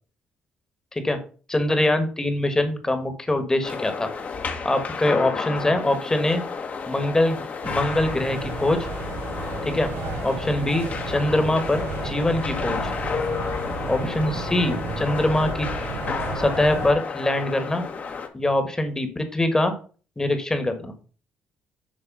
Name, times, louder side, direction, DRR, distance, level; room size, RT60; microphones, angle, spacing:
voice 1, 1.5-4.1 4.6-6.4 6.9-8.9 9.6-9.9 10.2-12.9 13.9-15.7 16.3-17.8 18.3-19.7 20.2-20.9, left 1 dB, 15° left, 7 dB, 1.4 m, -23 dB
sound 1, 3.6-18.3, left 5 dB, 45° left, 1.2 m, -31 dB
sound 2, 7.6-16.9, right 4 dB, 80° right, 1.0 m, -33 dB
7.4 x 3.2 x 5.3 m, 0.39 s
cardioid pair, 80°, 4 cm